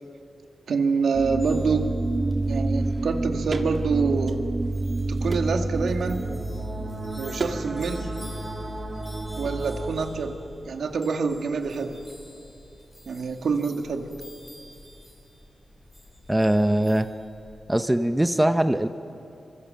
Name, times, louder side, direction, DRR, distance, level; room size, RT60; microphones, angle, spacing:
voice 1, 0.7-2.0 2.5-4.4 5.1-6.2 7.2-8.1 9.4-10.4 10.7-12.0 13.1-14.1, right 4 dB, 80° right, 4 dB, 2.0 m, -26 dB
sound 1, 1.1-10.0, right 2 dB, 30° right, 1.7 m, -29 dB
sound 2, 1.4-17.7, left 1 dB, 10° left, 4.0 m, -49 dB
sound 3, 3.5-3.7 4.2-4.8 5.3-5.7 7.4-7.6 7.9-8.4 9.4-9.6, right 3 dB, 45° right, 1.6 m, -35 dB
voice 2, 16.3-17.1 17.7-18.9, right 1 dB, 10° right, 9 dB, 0.7 m, -21 dB
28.0 x 24.5 x 7.7 m, 2.7 s
wide cardioid pair, 140°, 0 cm